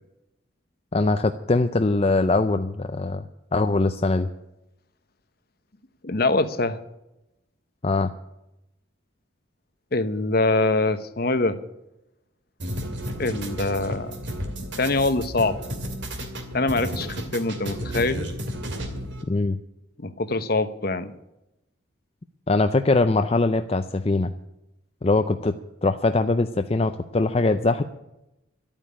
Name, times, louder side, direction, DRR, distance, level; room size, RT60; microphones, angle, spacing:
voice 1, 0.9-3.3 3.5-4.3 7.8-8.1 19.3-19.6 22.5-24.3 25.0-25.5 25.8-27.8, left 3 dB, 30° left, 8 dB, 0.5 m, -22 dB
voice 2, 6.0-6.8 9.9-11.6 13.2-14.2 14.8-15.6 16.5-18.3 20.0-21.1, left 2 dB, 50° left, 11 dB, 0.9 m, -24 dB
sound 1, 12.6-19.2, equal, 60° right, 2.5 m, -32 dB
12.0 x 9.0 x 9.9 m, 0.91 s
head